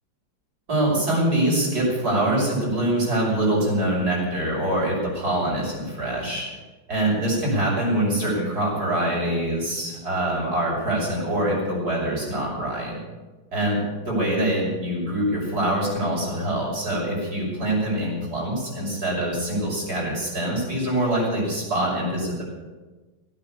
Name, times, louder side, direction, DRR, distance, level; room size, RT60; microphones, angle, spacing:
voice 1, 0.7-6.4 6.9-13.0 13.5-13.8 14.1-22.4, right 1 dB, 50° right, -4 dB, 6.7 m, -24 dB
16.5 x 9.2 x 8.5 m, 1.2 s
omnidirectional pair, 2.1 m